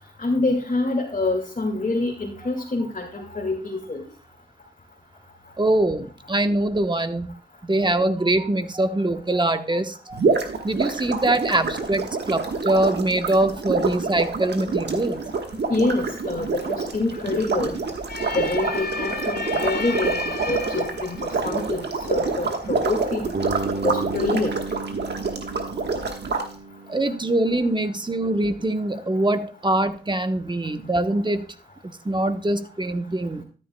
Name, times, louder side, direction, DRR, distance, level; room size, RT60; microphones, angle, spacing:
voice 1, 0.2-4.0 15.7-17.8 18.3-23.3 23.8-24.5, left 2 dB, 50° left, -1 dB, 2.0 m, -26 dB
voice 2, 5.6-7.3 7.6-10.2 10.6-15.2 26.9-31.4 32.0-33.4, right 1 dB, 25° right, 8 dB, 1.0 m, -23 dB
sound 1, 10.1-26.4, right 4 dB, 90° right, 1.4 m, -27 dB
sound 2, 14.1-25.3, left 4 dB, 75° left, 1.7 m, -37 dB
Bass guitar, 23.3-27.4, right 3 dB, 70° right, 1.2 m, -33 dB
13.0 x 9.9 x 2.2 m, 0.37 s
cardioid pair, 55°, 17 cm